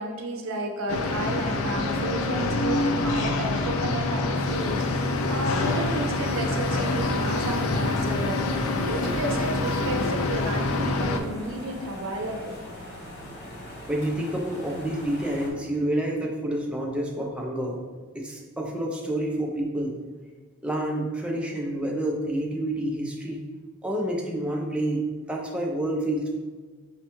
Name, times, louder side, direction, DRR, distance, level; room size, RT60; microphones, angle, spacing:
voice 1, 0.0-12.6, right 1 dB, 85° right, 3 dB, 0.6 m, -32 dB
sound 1, 0.9-11.2, left 2 dB, 85° left, 0.4 m, -26 dB
sound 2, 4.3-15.5, left 1 dB, 55° left, 0.8 m, -42 dB
voice 2, 13.9-17.8 18.1-20.0 20.6-23.5 23.8-26.3, right 1 dB, 5° right, -1 dB, 0.4 m, -28 dB
5.2 x 2.2 x 3.0 m, 1.4 s
head